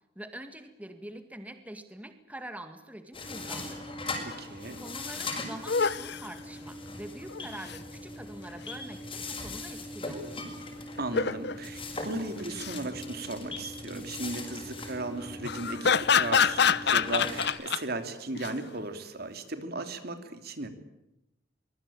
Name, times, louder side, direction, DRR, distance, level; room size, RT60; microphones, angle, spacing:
voice 1, 0.2-4.3 4.8-10.4, right 1 dB, 10° right, 8 dB, 2.0 m, -45 dB
sound 1, 3.1-17.5, left 2 dB, 30° left, 6.5 m, -40 dB
voice 2, 4.2-4.8 11.0-20.7, right 2 dB, 60° right, 8 dB, 2.9 m, -36 dB
sound 2, 4.9-5.0 5.2-5.3 5.7-6.2 7.3-7.8 11.0-11.6 12.4-12.8 15.4-17.8 18.4-18.5, left 6 dB, 65° left, 1.0 m, -26 dB
24.5 x 22.5 x 8.8 m, 0.92 s
head